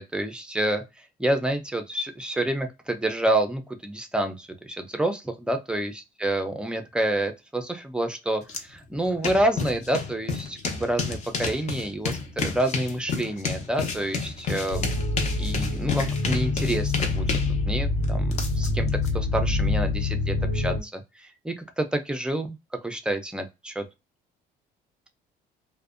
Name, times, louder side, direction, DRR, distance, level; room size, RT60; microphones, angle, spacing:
voice 1, 0.0-14.9 15.4-17.4 17.7-18.9 19.1-22.6 22.8-23.8, right 1 dB, 5° right, 7 dB, 0.4 m, -28 dB
sound 1, 8.5-8.6 8.9-19.1, left 4 dB, 40° left, 0.6 m, -31 dB
sound 2, 14.7-20.8, left 2 dB, 80° left, 0.9 m, -26 dB
2.5 x 2.1 x 2.3 m, 0.24 s
cardioid pair, 110°, 17 cm